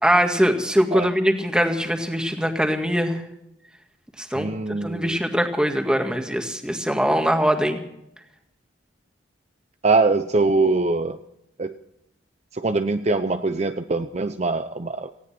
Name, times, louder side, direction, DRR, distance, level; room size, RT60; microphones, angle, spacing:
voice 1, 0.0-3.2 4.2-7.8, equal, 5° right, 4 dB, 1.9 m, -22 dB
voice 2, 4.4-5.2 9.8-11.2 11.6-11.7 12.5-15.1, right 3 dB, 35° right, 8 dB, 0.6 m, -22 dB
18.5 x 16.5 x 4.4 m, 0.83 s
head